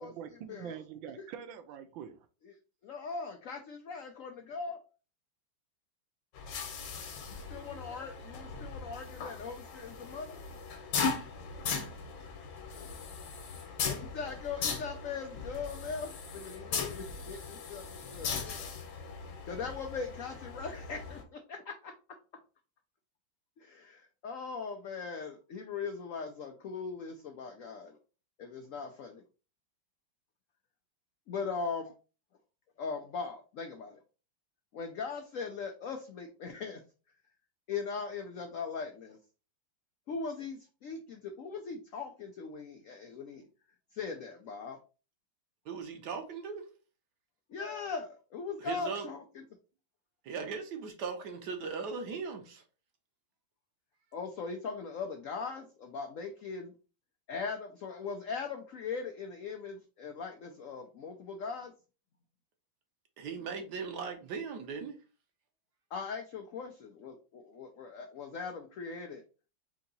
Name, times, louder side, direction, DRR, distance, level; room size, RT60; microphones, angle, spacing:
voice 1, 0.0-2.2, right 9 dB, 90° right, 1.4 m, -44 dB
voice 2, 2.8-4.8 7.3-10.4 13.9-18.8 19.4-21.9 23.6-28.0 28.4-29.2 31.3-31.9 32.8-34.0 34.7-36.8 37.7-39.2 40.1-43.5 43.9-44.8 47.5-49.4 54.1-56.7 57.3-61.7 65.9-69.2, left 5 dB, 85° left, 0.7 m, -40 dB
sound 1, 6.3-21.2, left 5 dB, 70° left, 1.6 m, -39 dB
voice 3, 45.6-46.6 48.6-49.1 50.2-52.6 63.2-64.9, right 5 dB, 60° right, 1.4 m, -38 dB
4.5 x 2.8 x 3.9 m
omnidirectional pair, 2.1 m